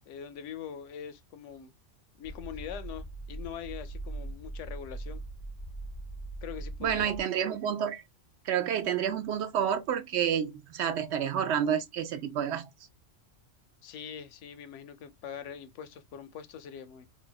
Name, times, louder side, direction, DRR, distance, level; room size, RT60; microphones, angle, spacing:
voice 1, 0.0-1.7 2.2-5.2 6.4-7.2 13.8-17.1, left 8 dB, 75° left, 0.9 m, -43 dB
sound 1, 2.2-7.2, right 2 dB, 50° left, 0.3 m, -41 dB
voice 2, 6.8-8.0 8.5-12.7, right 9 dB, 70° right, 0.8 m, -29 dB
4.0 x 2.2 x 2.2 m
omnidirectional pair, 1.3 m